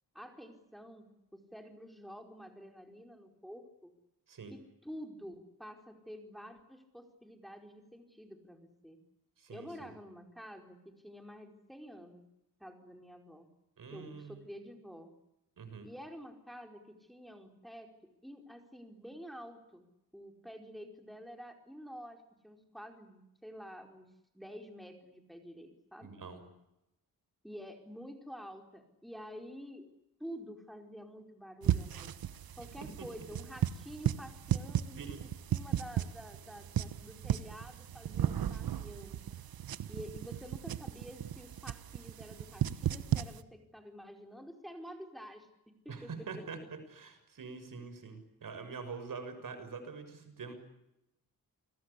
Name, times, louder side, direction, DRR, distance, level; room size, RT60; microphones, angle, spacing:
voice 1, 0.1-3.9 4.5-9.0 9.5-12.2 12.6-13.5 13.9-15.1 15.8-19.9 20.1-26.1 27.4-29.9 30.2-32.1 32.6-39.2 39.9-46.7, equal, ahead, 4 dB, 4.7 m, -49 dB
voice 2, 9.4-9.9 13.8-14.4 15.6-15.9 26.0-26.4 33.0-33.1 35.0-35.2 45.9-46.6 46.9-50.5, right 5 dB, 65° right, 9 dB, 6.6 m, -45 dB
sound 1, 31.6-43.4, right 10 dB, 85° right, 1.2 m, -35 dB
29.0 x 22.5 x 8.5 m, 0.88 s
cardioid pair, 95°, 35 cm